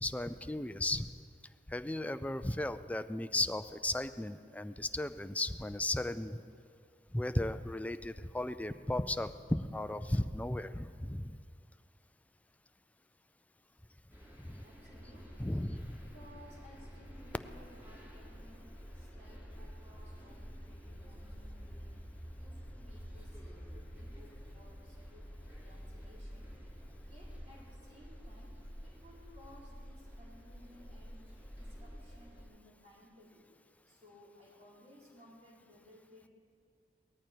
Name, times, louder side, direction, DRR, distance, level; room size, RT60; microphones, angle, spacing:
voice 1, 0.0-1.1 1.7-6.4 7.1-11.4 14.4-14.6 15.4-16.0, left 1 dB, 10° left, 11 dB, 0.4 m, -35 dB
sound 1, 14.1-32.4, equal, 15° right, 4.5 m, -49 dB
voice 2, 14.6-15.7 16.0-18.7 18.9-22.0 22.3-25.3 25.6-26.5 27.0-33.5 33.8-36.3, left 1 dB, 40° right, -6 dB, 4.4 m, -59 dB
18.0 x 14.0 x 4.6 m, 2.3 s
head